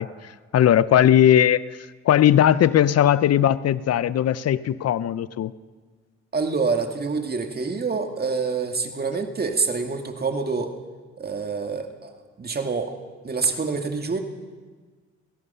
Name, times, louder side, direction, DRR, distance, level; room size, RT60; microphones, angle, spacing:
voice 1, 0.0-1.6 2.0-5.5, left 10 dB, 55° left, 17 dB, 0.8 m, -18 dB
voice 2, 6.3-10.7 11.2-12.1 12.4-12.9 13.2-14.2, right 4 dB, 30° right, 5 dB, 2.2 m, -26 dB
29.5 x 16.5 x 5.7 m, 1.4 s
cardioid pair, 90°, 30 cm